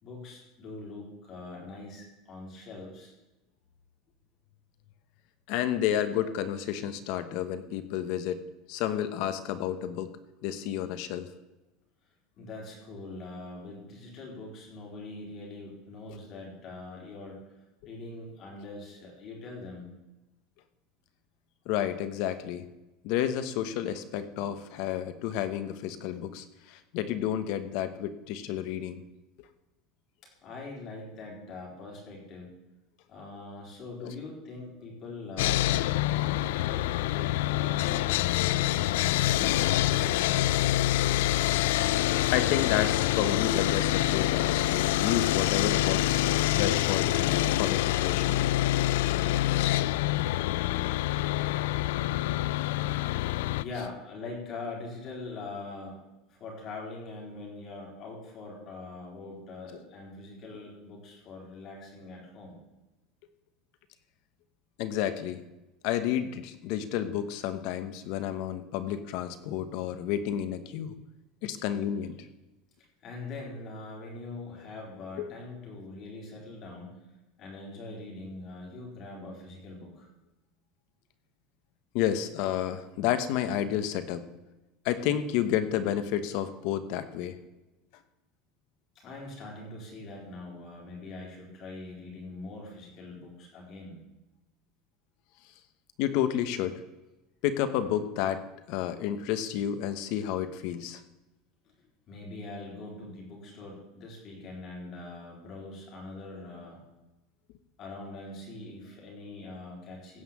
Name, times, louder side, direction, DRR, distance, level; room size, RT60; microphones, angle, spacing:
voice 1, 0.0-3.1 12.4-17.5 17.8-20.0 30.4-32.5 33.1-40.8 53.6-56.0 56.3-62.5 71.5-71.6 73.0-77.0 77.4-80.1 88.9-94.0 101.6-101.7 102.1-106.8 107.8-110.2, left 3 dB, 35° left, -2 dB, 4.2 m, -43 dB
voice 2, 5.5-8.4 8.7-10.1 10.4-11.3 21.7-22.6 23.0-29.0 34.0-34.1 42.3-48.4 64.8-65.4 65.8-70.9 71.4-72.2 75.2-75.3 81.9-84.2 84.8-87.3 96.0-96.8 97.4-98.4 98.7-101.0, left 10 dB, 55° left, 11 dB, 1.1 m, -31 dB
Sawing, 35.4-53.6, left 15 dB, 85° left, 0.3 m, -26 dB
16.0 x 5.7 x 7.5 m, 1.0 s
cardioid pair, 170°, 0 cm